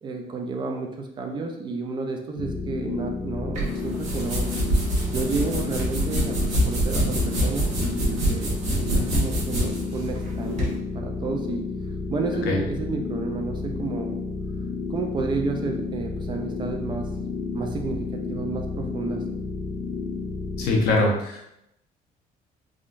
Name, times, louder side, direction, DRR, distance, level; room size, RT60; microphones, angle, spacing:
voice 1, 0.0-4.5 5.1-11.6 12.1-14.1 14.9-17.1 17.5-19.2, right 4 dB, 30° right, 3 dB, 0.4 m, -31 dB
sound 1, 2.4-20.9, left 4 dB, 45° left, 0.5 m, -31 dB
sound 2, 3.5-10.7, right 1 dB, 50° right, 0.9 m, -25 dB
voice 2, 20.6-21.5, left 2 dB, 85° left, 0 dB, 0.8 m, -22 dB
3.6 x 2.2 x 2.5 m, 0.80 s
cardioid pair, 155°, 16 cm